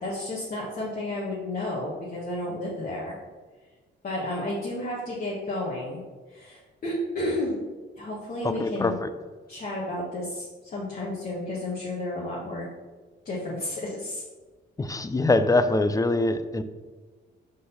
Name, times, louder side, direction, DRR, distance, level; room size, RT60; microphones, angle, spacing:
voice 1, 0.0-3.2 4.0-6.0 6.3-7.6 8.0-8.9 9.5-12.7 13.2-14.2, left 1 dB, 45° left, -7 dB, 1.6 m, -32 dB
voice 2, 8.4-9.1 14.8-16.6, left 2 dB, 15° left, 11 dB, 0.5 m, -23 dB
5.1 x 4.1 x 5.6 m, 1.3 s
cardioid pair, 90°, 20 cm